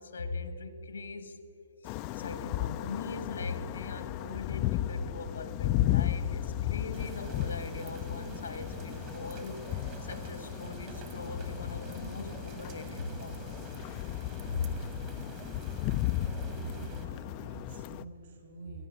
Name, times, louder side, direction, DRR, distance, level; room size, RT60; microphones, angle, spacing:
voice 1, 0.0-1.4 1.8-9.6 10.0-13.9 14.5-14.7, left 4 dB, 80° left, 10 dB, 1.4 m, -40 dB
sound 1, 1.8-18.0, left 13 dB, 35° left, 0.4 m, -35 dB
sound 2, 6.9-17.1, right 5 dB, 35° right, 1.4 m, -46 dB
voice 2, 16.6-18.9, right 2 dB, 60° right, 3 dB, 4.7 m, -45 dB
16.0 x 10.5 x 7.5 m, 2.4 s
hypercardioid pair, 130°, 0 cm